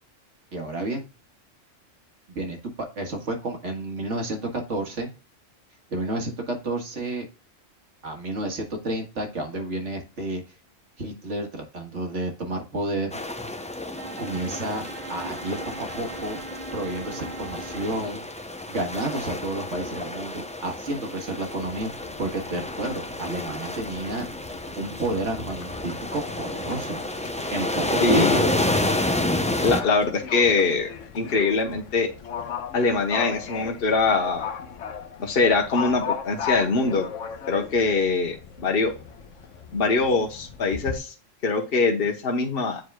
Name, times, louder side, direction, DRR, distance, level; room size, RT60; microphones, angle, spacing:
voice 1, 0.5-1.1 2.4-5.1 5.9-7.3 8.0-10.4 11.0-13.2 14.2-14.8 15.1-16.4 16.7-18.2 18.7-24.3 24.8-27.0 27.5-28.5, right 2 dB, 70° right, 3 dB, 2.0 m, -30 dB
sound 1, 13.1-29.8, left 1 dB, 10° left, 0.3 m, -30 dB
Bowed string instrument, 14.0-18.2, right 3 dB, 40° right, 1.2 m, -40 dB
Livestock farm animals working animals, 21.6-41.0, left 7 dB, 75° left, 1.2 m, -37 dB
voice 2, 28.0-28.4 29.6-32.1 32.7-34.5 35.2-37.1 37.5-38.9 39.7-41.1 41.4-42.8, left 4 dB, 50° left, 2 dB, 1.3 m, -23 dB
9.2 x 4.8 x 2.2 m, 0.33 s
omnidirectional pair, 1.3 m